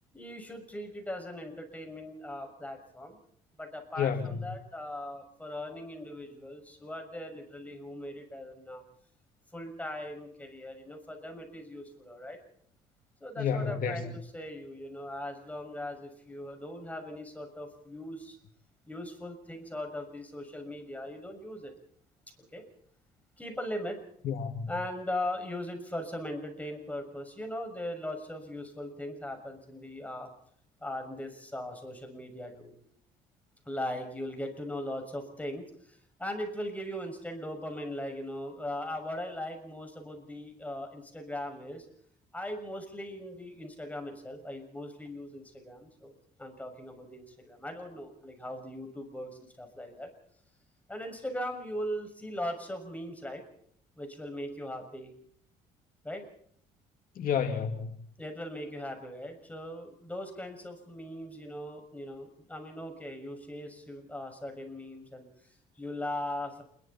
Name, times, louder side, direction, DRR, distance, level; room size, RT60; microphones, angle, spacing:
voice 1, 0.1-3.2 3.6-8.8 9.5-12.4 13.2-18.4 18.8-21.7 22.4-22.7 23.4-24.0 24.7-30.3 30.8-32.7 33.6-41.8 42.3-46.1 46.4-49.3 49.6-50.1 50.9-53.4 54.0-55.1 56.0-56.2 58.2-66.6, left 1 dB, 10° left, 6.5 m, -39 dB
voice 2, 4.0-4.4 13.4-14.1 24.2-24.7 57.2-58.0, left 7 dB, 55° left, 2.2 m, -30 dB
28.5 x 22.0 x 4.3 m
cardioid pair, 110°, 17 cm